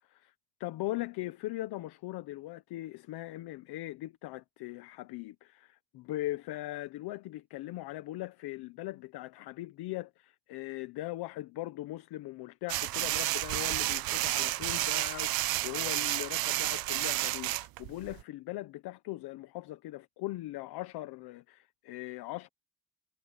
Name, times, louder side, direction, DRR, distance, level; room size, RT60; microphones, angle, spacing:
voice 1, 0.6-22.5, left 16 dB, 90° left, 1.0 m, -40 dB
sound 1, 12.7-18.2, right 17 dB, 70° right, 0.6 m, -31 dB
cardioid pair, 100°, 37 cm